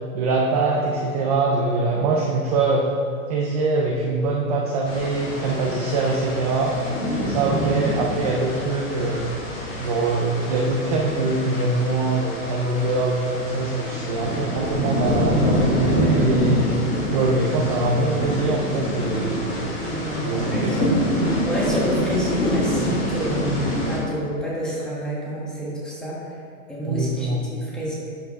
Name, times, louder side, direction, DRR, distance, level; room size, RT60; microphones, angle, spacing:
voice 1, 0.1-2.9 3.3-6.8 7.2-9.2 9.8-16.6 17.1-19.6 20.2-20.9 26.9-27.4, right 3 dB, 30° right, -1 dB, 0.5 m, -23 dB
sound 1, 4.8-24.0, equal, 20° left, 1.6 m, -26 dB
voice 2, 7.0-7.5 13.8-14.1 19.8-21.0 21.5-26.2 26.7-27.9, equal, ahead, -7 dB, 1.2 m, -29 dB
11.5 x 4.7 x 3.6 m, 2.4 s
supercardioid pair, 160°, 42 cm